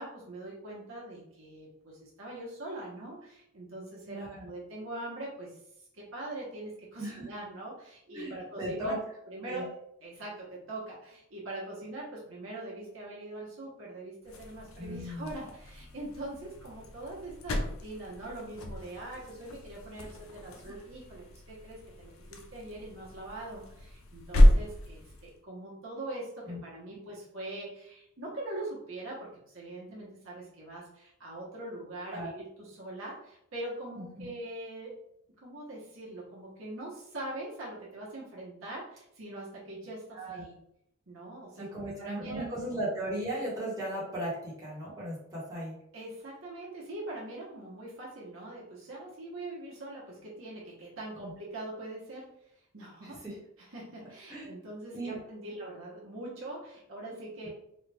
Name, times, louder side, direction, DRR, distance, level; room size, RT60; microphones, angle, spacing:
voice 1, 0.0-5.6 5.9-9.0 9.3-34.9 35.4-40.5 41.1-42.8 45.9-52.4 52.7-53.2 53.6-57.5, right 1 dB, 70° right, -5 dB, 1.1 m, -42 dB
voice 2, 4.1-4.5 7.0-7.3 8.1-9.0 9.5-9.6 14.8-15.3 20.6-20.7 26.5-26.6 32.1-32.3 33.9-34.3 40.1-40.4 41.6-45.7 51.2-51.3 53.0-53.3 54.3-54.5 54.9-55.2 57.4-57.5, right 1 dB, 15° right, -8 dB, 1.3 m, -37 dB
sound 1, 14.2-25.4, equal, 80° left, 0.5 m, -30 dB
3.1 x 2.5 x 3.4 m, 0.77 s
head